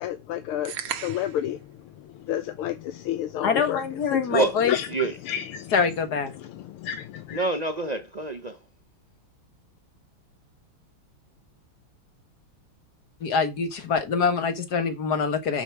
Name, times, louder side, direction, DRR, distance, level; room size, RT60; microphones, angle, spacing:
voice 1, 0.0-3.8 4.1-4.4 4.7-4.9 5.3-5.9 6.4-7.4, left 11 dB, 85° left, 1.7 m, -31 dB
sound 1, 0.7-1.5, right 9 dB, 80° right, 1.9 m, -34 dB
voice 2, 3.4-4.7 5.7-6.3 13.2-15.6, left 5 dB, 50° left, 1.9 m, -25 dB
voice 3, 4.3-5.2 7.3-8.6, right 3 dB, 60° right, 0.4 m, -27 dB
7.4 x 6.9 x 4.7 m
omnidirectional pair, 2.3 m